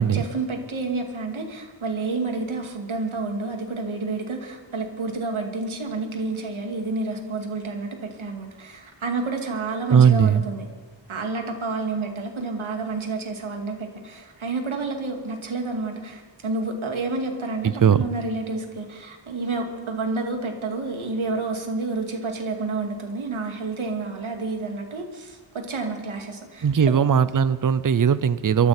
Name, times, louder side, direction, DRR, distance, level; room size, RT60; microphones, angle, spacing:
voice 1, 0.0-10.7 11.1-27.0, right 3 dB, 80° right, 3 dB, 2.5 m, -29 dB
voice 2, 9.9-10.4 17.6-18.1 26.6-28.7, right 7 dB, 45° right, 16 dB, 0.6 m, -18 dB
23.0 x 14.0 x 4.4 m, 1.3 s
wide cardioid pair, 85°, 47 cm